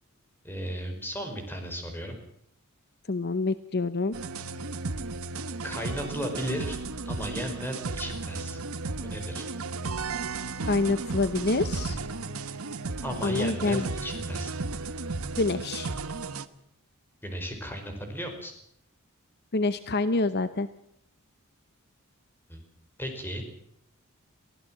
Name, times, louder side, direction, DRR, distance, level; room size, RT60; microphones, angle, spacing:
voice 1, 0.4-2.2 5.6-6.8 7.0-8.6 9.0-9.5 13.0-14.5 17.2-18.5 22.5-22.6 23.0-23.4, equal, 10° left, 4 dB, 5.0 m, -35 dB
voice 2, 3.1-4.1 10.7-12.0 13.2-13.9 15.4-15.9 19.5-20.7, left 3 dB, 45° left, 12 dB, 0.8 m, -27 dB
sound 1, 4.1-16.5, right 3 dB, 75° right, 1.2 m, -34 dB
24.0 x 16.5 x 7.6 m, 0.73 s
head